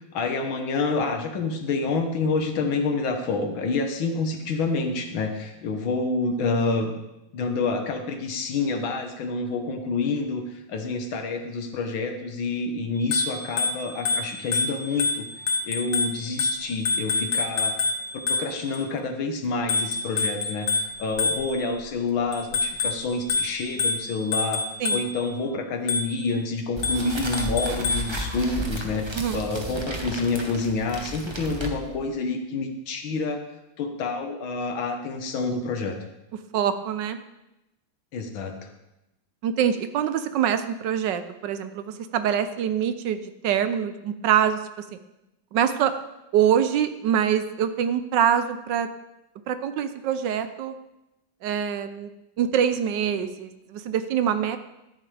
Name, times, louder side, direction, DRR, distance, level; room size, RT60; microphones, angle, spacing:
voice 1, 0.1-6.9 7.3-10.4 10.7-15.3 15.7-17.8 18.3-24.6 24.9-29.1 29.3-33.4 33.8-36.0 38.1-38.5, left 3 dB, 85° left, 5 dB, 2.0 m, -28 dB
Bicycle bell, 13.0-18.8 19.7-21.8 22.3-25.3 25.9-26.3 26.8-28.2, left 4 dB, 55° left, 1.8 m, -27 dB
sound 1, 26.8-32.1, right 1 dB, 20° right, 0.8 m, -33 dB
voice 2, 36.5-37.2 39.4-43.2 43.4-44.6 45.5-45.9 46.3-48.9 49.5-50.7 51.4-52.1 52.4-54.6, right 9 dB, 70° right, 10 dB, 1.3 m, -24 dB
12.0 x 10.5 x 3.4 m, 0.91 s
omnidirectional pair, 2.1 m